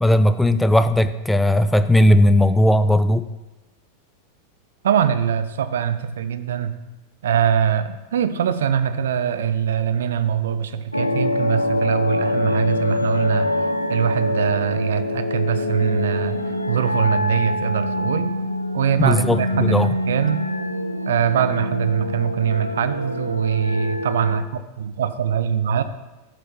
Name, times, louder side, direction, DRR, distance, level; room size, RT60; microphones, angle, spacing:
voice 1, 0.0-3.2 19.0-19.9, left 1 dB, 5° left, 12 dB, 0.3 m, -17 dB
voice 2, 4.8-6.7 7.2-13.5 13.9-18.4 18.7-20.4 21.1-25.8, right 8 dB, 60° right, 11 dB, 0.5 m, -22 dB
sound 1, 10.9-24.4, left 1 dB, 85° left, 0.4 m, -25 dB
8.1 x 4.4 x 6.2 m, 1.1 s
figure-of-eight pair, 90°, 0 cm